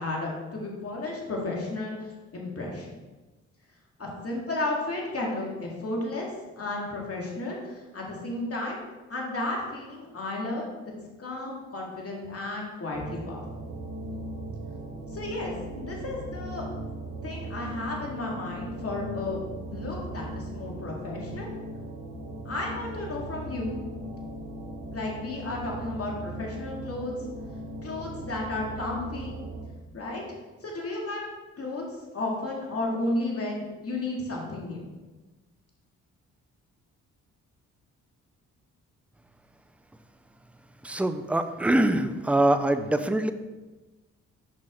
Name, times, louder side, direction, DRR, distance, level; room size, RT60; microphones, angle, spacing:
voice 1, 0.0-2.9 4.0-8.8 9.1-10.9 11.2-13.4 15.1-16.7 17.2-19.4 19.7-21.5 22.4-23.8 24.9-27.1 27.8-29.4 29.9-30.2 30.6-31.3 31.6-31.8 32.1-34.9, left 2 dB, 45° left, -2 dB, 2.3 m, -33 dB
sound 1, 12.9-29.7, right 1 dB, 45° right, 1.6 m, -38 dB
voice 2, 40.8-43.3, right 1 dB, 5° right, 10 dB, 0.5 m, -24 dB
6.5 x 5.6 x 3.8 m, 1.2 s
supercardioid pair, 50°, 34 cm